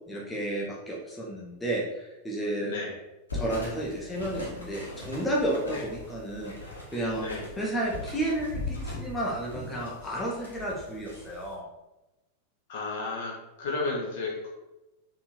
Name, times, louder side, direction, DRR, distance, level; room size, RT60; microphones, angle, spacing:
voice 1, 0.1-2.7 3.3-11.7, right 1 dB, 10° left, -4 dB, 2.1 m, -32 dB
voice 2, 2.6-2.9 5.6-5.8 7.2-7.4 12.7-13.3 13.6-14.5, left 3 dB, 55° left, -2 dB, 2.2 m, -32 dB
sound 1, 3.3-11.5, left 2 dB, 75° left, 2.5 m, -40 dB
6.8 x 5.2 x 4.8 m, 0.98 s
figure-of-eight pair, 90°, 0 cm